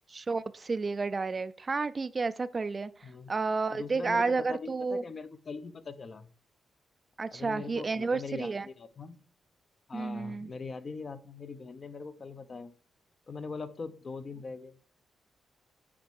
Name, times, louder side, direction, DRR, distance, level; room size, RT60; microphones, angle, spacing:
voice 1, 0.1-2.9 3.3-5.0 7.2-8.7 9.9-10.5, right 4 dB, 30° right, 0.4 m, -31 dB
voice 2, 3.0-3.3 3.7-6.3 7.3-9.2 9.9-12.7 13.3-14.8, left 4 dB, 40° left, 0.7 m, -41 dB
8.7 x 5.2 x 4.6 m
cardioid pair, 105°, 0 cm